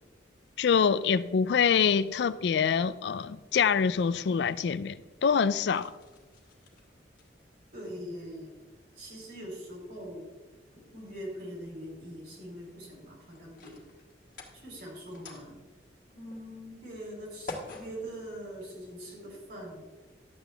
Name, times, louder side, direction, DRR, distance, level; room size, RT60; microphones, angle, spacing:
voice 1, 0.6-5.0 5.2-5.9, left 6 dB, 65° left, 0.3 m, -25 dB
sound 1, 2.3-19.1, left 2 dB, 50° left, 1.7 m, -52 dB
voice 2, 7.7-8.5 9.0-10.3 10.9-13.8 14.5-15.6 16.1-19.8, equal, 60° right, 3.5 m, -42 dB
11.5 x 8.2 x 3.4 m
head